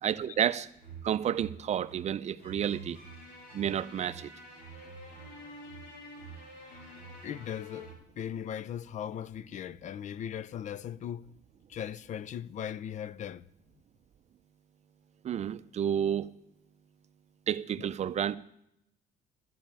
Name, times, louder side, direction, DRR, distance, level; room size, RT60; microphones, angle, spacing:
voice 1, 0.0-0.7 1.0-3.0 3.5-4.3 15.2-16.3 17.5-18.4, right 9 dB, 40° right, 0.5 m, -30 dB
sound 1, 0.8-7.9, right 2 dB, 70° left, 4.2 m, -48 dB
voice 2, 7.2-11.3 11.7-13.4 17.8-17.9, left 9 dB, 45° left, 0.5 m, -38 dB
12.5 x 5.3 x 8.8 m
cardioid pair, 110°, 17 cm